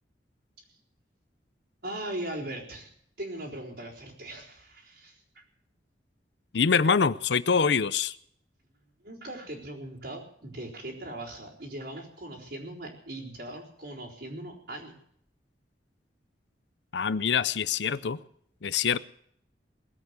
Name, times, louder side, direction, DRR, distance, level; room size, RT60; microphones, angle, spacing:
voice 1, 1.8-2.9 3.2-5.4 9.0-15.0, right 1 dB, 65° right, -5 dB, 4.0 m, -39 dB
voice 2, 6.5-8.1 16.9-18.2 18.6-19.0, left 6 dB, 75° left, 17 dB, 0.6 m, -25 dB
20.0 x 8.3 x 8.2 m, 0.66 s
head